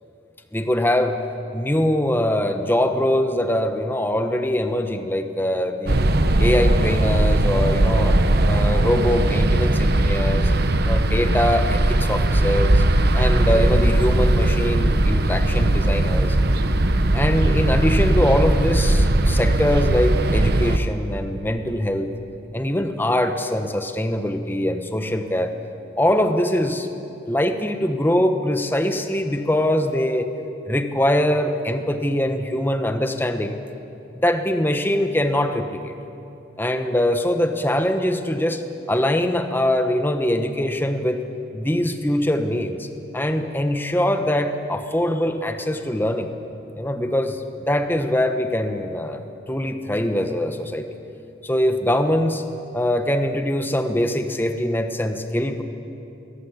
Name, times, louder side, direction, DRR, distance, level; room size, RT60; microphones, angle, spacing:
voice 1, 0.5-1.2 1.5-6.1 6.4-8.2 8.4-10.5 10.8-12.8 13.1-16.4 17.1-22.1 22.5-25.5 26.0-26.9 27.3-30.3 30.6-33.6 34.2-35.9 36.6-41.2 41.5-42.9 43.1-46.3 46.7-50.9 51.4-52.4 52.7-55.6, left 1 dB, 10° left, 7 dB, 1.1 m, -22 dB
sound 1, 5.9-20.8, right 1 dB, 55° right, 1.0 m, -19 dB
22.5 x 18.0 x 8.5 m, 2.8 s
head